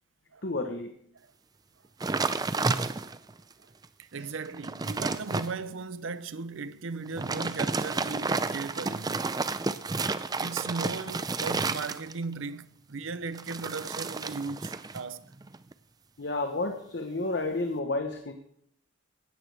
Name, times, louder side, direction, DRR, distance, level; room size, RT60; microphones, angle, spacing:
voice 1, 0.4-0.9 4.2-4.3 16.2-18.3, left 2 dB, 55° left, 1.1 m, -31 dB
sound 1, 2.0-3.3 3.8-3.9 4.4-5.5 7.1-12.3 13.3-15.0 15.3-15.7, right 3 dB, 20° right, 0.4 m, -31 dB
voice 2, 4.0-9.3 10.4-15.3, right 4 dB, 75° right, 0.6 m, -37 dB
17.5 x 13.0 x 3.4 m
head